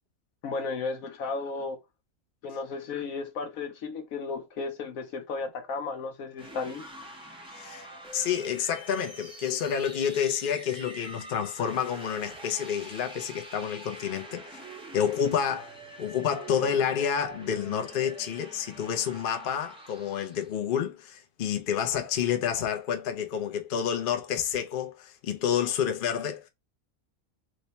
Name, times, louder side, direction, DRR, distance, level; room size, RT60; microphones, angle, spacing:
voice 1, 0.4-1.8 2.4-6.9, left 4 dB, 70° left, 1.2 m, -34 dB
sound 1, 6.3-20.5, right 1 dB, 5° right, 0.4 m, -45 dB
voice 2, 7.5-7.9 8.1-14.6 14.9-26.4, left 8 dB, 55° left, 0.6 m, -29 dB
3.1 x 2.2 x 4.0 m
omnidirectional pair, 1.5 m